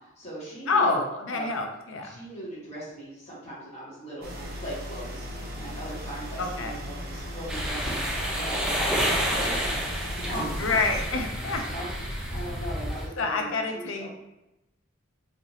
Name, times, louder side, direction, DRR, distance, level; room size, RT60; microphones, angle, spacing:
voice 1, 0.0-1.0 1.3-1.5 2.1-5.2 5.6-9.8 10.1-10.7 11.6-11.9 12.3-14.1, right 1 dB, 30° left, -8 dB, 1.4 m, -39 dB
voice 2, 0.7-2.2 6.4-6.8 10.6-11.6 13.2-14.1, left 3 dB, 70° left, 4 dB, 0.5 m, -27 dB
sound 1, 4.2-11.0, equal, 45° right, 0.6 m, -37 dB
sound 2, 5.3-12.7, equal, 30° right, 1.2 m, -39 dB
sound 3, 7.5-13.1, equal, 5° right, 0.5 m, -30 dB
3.3 x 2.7 x 2.7 m, 0.93 s
head